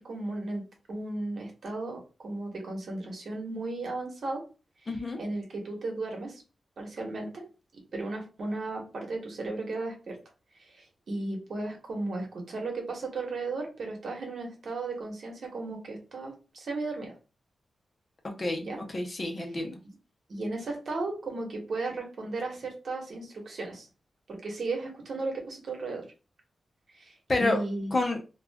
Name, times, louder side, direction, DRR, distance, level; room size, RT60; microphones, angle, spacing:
voice 1, 0.0-4.4 5.2-6.4 6.8-7.3 7.7-10.2 10.6-17.1 18.6-18.8 20.3-23.9 24.3-26.0 26.9-27.9, right 2 dB, 65° right, 1 dB, 1.1 m, -35 dB
voice 2, 4.9-5.2 18.2-19.8 27.3-27.6 27.9-28.2, left 2 dB, 40° left, 4 dB, 0.7 m, -29 dB
2.4 x 2.4 x 3.4 m, 0.32 s
wide cardioid pair, 90°, 0 cm